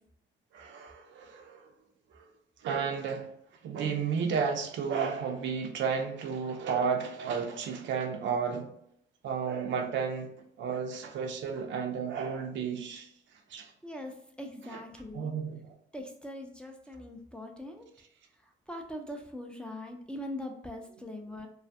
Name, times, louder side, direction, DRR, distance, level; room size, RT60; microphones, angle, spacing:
voice 1, 0.5-1.7 2.1-2.2 2.6-3.3 3.6-8.7 9.2-10.3 10.6-13.1 13.5-13.7 14.7-14.8 15.1-15.7, right 6 dB, 70° right, 0.5 m, -32 dB
voice 2, 13.8-15.3 15.9-17.9 18.7-21.5, left 1 dB, 5° left, 0.4 m, -41 dB
2.4 x 2.3 x 2.5 m
cardioid pair, 90°, 20 cm